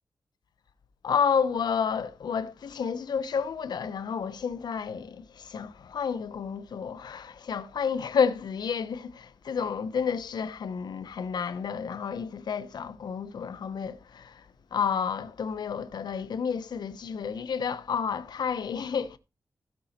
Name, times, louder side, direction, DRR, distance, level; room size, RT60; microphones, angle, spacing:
voice 1, 1.0-14.4 14.7-19.2, left 6 dB, 90° left, 1.0 m, -30 dB
16.0 x 5.5 x 4.3 m
wide cardioid pair, 115°, 7 cm